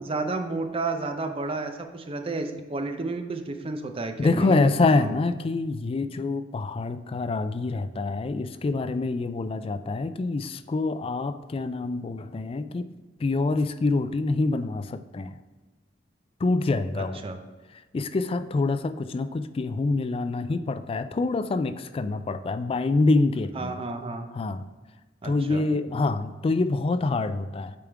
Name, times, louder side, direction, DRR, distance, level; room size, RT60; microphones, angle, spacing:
voice 1, 0.0-4.7 5.0-5.1 17.0-17.4 23.5-24.3 25.2-25.6, right 3 dB, 30° right, 6 dB, 0.6 m, -31 dB
voice 2, 4.2-12.9 13.2-15.4 16.4-17.2 17.9-23.7 24.3-24.7 25.2-27.7, left 3 dB, 30° left, 11 dB, 0.3 m, -26 dB
8.6 x 3.6 x 4.6 m, 1.2 s
head